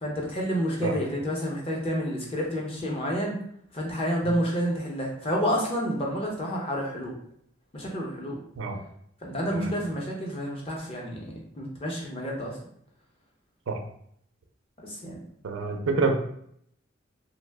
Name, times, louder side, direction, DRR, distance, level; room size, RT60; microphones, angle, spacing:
voice 1, 0.0-3.4 3.7-7.2 7.7-8.4 9.2-12.6 14.8-15.2, equal, 30° left, -2 dB, 0.6 m, -29 dB
voice 2, 15.4-16.1, right 3 dB, 85° right, 4 dB, 0.4 m, -27 dB
2.6 x 2.0 x 3.3 m, 0.68 s
head